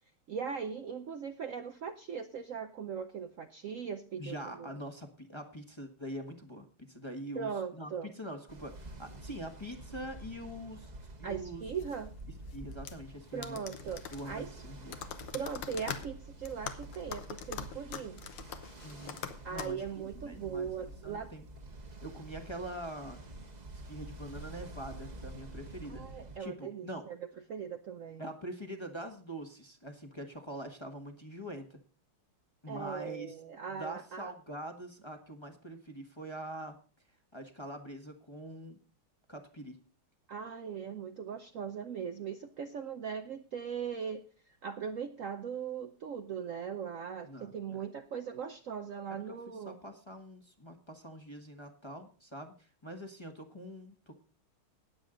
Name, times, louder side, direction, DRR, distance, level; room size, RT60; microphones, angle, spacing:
voice 1, 0.3-4.7 7.4-8.1 11.2-12.1 13.3-14.5 15.3-18.2 19.4-21.3 25.9-27.2 27.5-28.2 32.7-34.3 40.3-44.2 44.6-49.8, right 7 dB, 80° right, 7 dB, 0.7 m, -39 dB
voice 2, 4.2-10.9 11.2-11.6 12.5-15.0 18.8-19.2 19.5-20.7 21.0-21.5 22.0-23.2 23.7-26.0 26.4-27.1 28.2-31.8 32.6-33.3 33.7-36.8 37.3-38.8 39.3-39.8 47.2-47.9 49.1-54.2, equal, 15° left, 4 dB, 1.0 m, -44 dB
Ocean, 8.5-26.4, right 2 dB, 30° right, 0.9 m, -48 dB
sound 1, 11.8-19.7, left 8 dB, 80° left, 1.9 m, -44 dB
19.0 x 7.3 x 3.8 m, 0.39 s
omnidirectional pair, 2.4 m